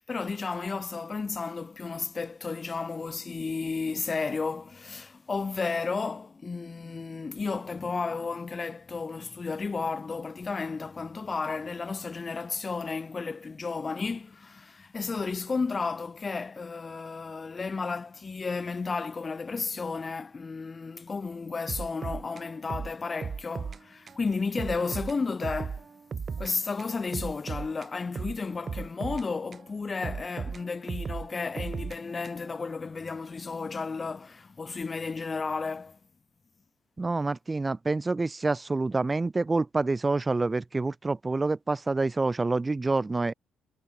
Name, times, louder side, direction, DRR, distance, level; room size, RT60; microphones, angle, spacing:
voice 1, 0.0-25.9 26.4-36.0, left 4 dB, 35° left, 1.3 m, -33 dB
sound 1, 21.7-23.8 24.1-24.2 24.6-26.5 26.8-29.7 30.0-32.6, right 5 dB, 45° right, 1.0 m, -37 dB
voice 2, 37.0-43.3, right 3 dB, 25° right, 1.3 m, -27 dB
hypercardioid pair, 50°, 0 cm